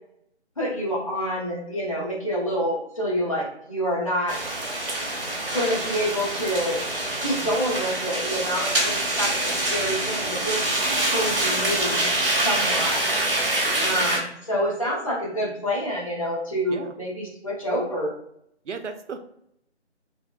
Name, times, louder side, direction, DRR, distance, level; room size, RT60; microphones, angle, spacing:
voice 1, 0.6-4.4 5.5-6.8 7.2-10.6 11.0-12.1 12.4-13.0 13.8-18.1, equal, 30° left, -5 dB, 0.9 m, -27 dB
sound 1, 4.3-14.2, right 1 dB, 50° right, 0.8 m, -25 dB
voice 2, 13.4-14.0 16.7-16.9 18.7-19.2, right 5 dB, 90° right, 7 dB, 0.5 m, -36 dB
2.8 x 2.0 x 2.3 m, 0.74 s
figure-of-eight pair, 165°, 35 cm